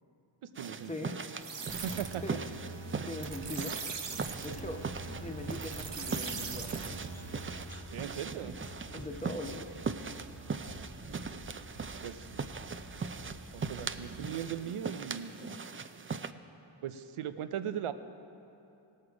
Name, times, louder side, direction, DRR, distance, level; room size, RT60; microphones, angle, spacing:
sound 1, 0.5-16.3, right 5 dB, 25° right, 0.4 m, -40 dB
voice 1, 0.6-1.2 1.8-2.2 7.9-8.6 12.0-12.3 13.5-15.3 16.8-17.9, right 9 dB, 80° right, 11 dB, 0.6 m, -38 dB
sound 2, 1.4-7.8, right 4 dB, 60° right, 1.0 m, -41 dB
voice 2, 3.0-3.8 4.4-6.7 8.9-9.7, left 1 dB, 15° left, 3 dB, 1.2 m, -41 dB
sound 3, 4.6-14.2, equal, 30° left, 1.2 m, -49 dB
17.5 x 6.6 x 4.9 m, 2.8 s
cardioid pair, 45°, 49 cm